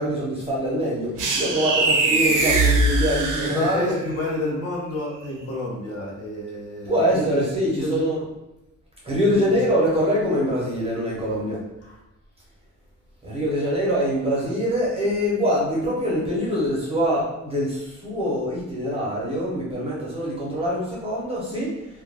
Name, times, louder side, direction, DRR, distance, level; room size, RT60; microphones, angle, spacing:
voice 1, 0.0-3.9 6.9-8.3 9.0-11.6 13.2-21.9, equal, 20° right, -6 dB, 0.6 m, -24 dB
sound 1, 1.2-4.1, right 2 dB, 80° right, 0.5 m, -21 dB
voice 2, 3.4-8.0 9.3-9.6 11.2-11.4 11.8-12.0, left 1 dB, 50° left, -4 dB, 0.7 m, -29 dB
2.2 x 2.2 x 3.2 m, 0.96 s
wide cardioid pair, 175°, 31 cm